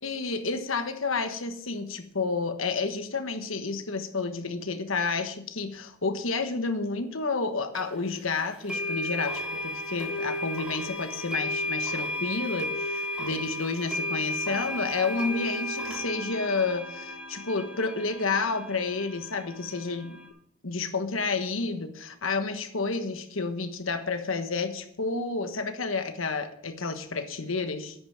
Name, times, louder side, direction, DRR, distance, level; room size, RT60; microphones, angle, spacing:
voice 1, 0.0-20.2 20.6-27.9, left 4 dB, 70° left, 8 dB, 1.3 m, -30 dB
sound 1, 7.7-7.8 8.7-20.3, left 1 dB, 5° right, 3.2 m, -33 dB
10.5 x 9.5 x 5.9 m, 0.67 s
head